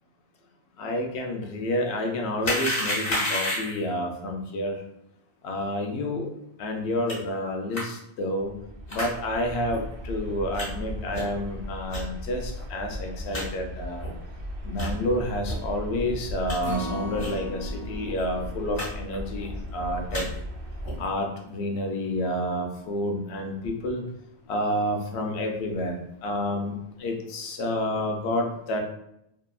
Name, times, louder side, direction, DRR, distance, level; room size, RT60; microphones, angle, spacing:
voice 1, 0.8-4.8 5.4-6.2 6.6-8.5 8.9-14.1 14.6-20.2 21.0-24.0 24.5-25.9 26.2-26.7 27.0-28.8, left 1 dB, 70° left, 2 dB, 0.8 m, -29 dB
sound 1, 2.4-3.9 7.1-7.2 7.7-7.8 8.9-9.1 9.7-9.8 10.5-10.7 11.1-11.4 11.9-12.0 12.6-12.7 12.9-13.0 13.3-13.4 14.0-14.1 14.7-14.9 15.4-15.6 16.0-16.6 17.2-17.4 17.7-17.8 18.0-18.2 18.7-18.9 19.1-19.5 19.9-20.2 20.8-21.1, left 1 dB, 55° left, 1.2 m, -30 dB
sound 2, 8.4-21.0, equal, 60° right, 0.7 m, -37 dB
Acoustic guitar, 16.6-22.9 23.3-23.4 23.8-23.9, right 1 dB, 20° right, 0.6 m, -40 dB
2.7 x 2.4 x 2.2 m, 0.79 s
omnidirectional pair, 1.2 m